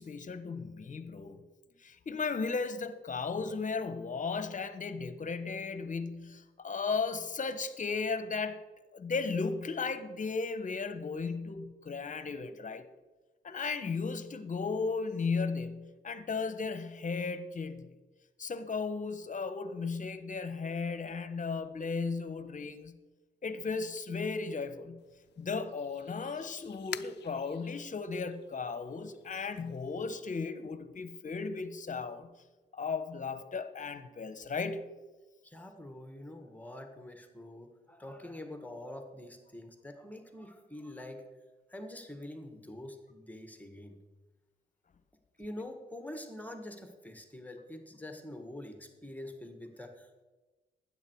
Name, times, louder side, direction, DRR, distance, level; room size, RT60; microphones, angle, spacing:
voice 1, 0.0-1.4 1.8-8.6 8.9-12.9 13.4-17.9 18.4-23.0 23.4-25.0 25.4-32.3 32.7-34.9, left 4 dB, 45° left, 12 dB, 1.1 m, -35 dB
sound 1, 25.0-30.2, left 11 dB, 70° left, 0.5 m, -49 dB
voice 2, 35.4-41.3 41.7-44.0 45.4-50.2, left 1 dB, 10° left, 5 dB, 1.7 m, -45 dB
12.5 x 9.4 x 4.7 m, 1.2 s
supercardioid pair, 60°, 19 cm